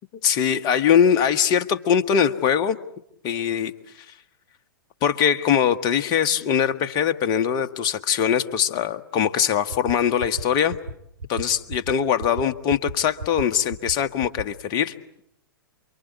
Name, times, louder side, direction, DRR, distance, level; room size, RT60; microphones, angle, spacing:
voice 1, 0.2-2.8 3.2-3.7 5.0-10.7 11.3-14.9, left 8 dB, 35° left, 10 dB, 1.4 m, -22 dB
sound 1, 9.7-9.9 10.2-10.4 10.7-10.9 11.2-11.4 11.7-11.9 12.2-12.4 12.7-12.9 13.2-13.4 13.7-13.9 14.2-14.4, right 3 dB, 80° right, 3.7 m, -32 dB
28.5 x 24.0 x 8.3 m, 0.76 s
figure-of-eight pair, 105°, 12 cm